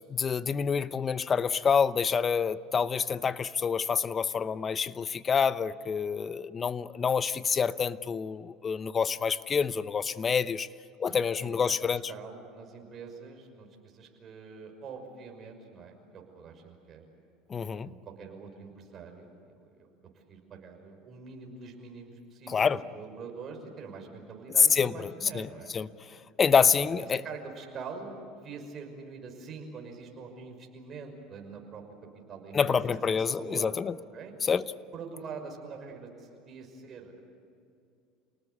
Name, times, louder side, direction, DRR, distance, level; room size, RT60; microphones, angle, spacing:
voice 1, 0.1-10.7 11.0-12.0 17.5-17.9 22.5-22.8 24.7-25.5 25.7-25.9 26.4-27.2 32.5-34.0 34.4-34.6, left 6 dB, 30° left, 15 dB, 0.8 m, -27 dB
voice 2, 11.0-11.8 12.1-17.0 17.8-19.9 20.3-25.8 26.9-31.8 32.3-33.7 34.1-34.4 34.9-37.2, right 5 dB, 40° right, 3 dB, 5.9 m, -44 dB
28.5 x 19.0 x 8.3 m, 2.5 s
supercardioid pair, 110°, 0 cm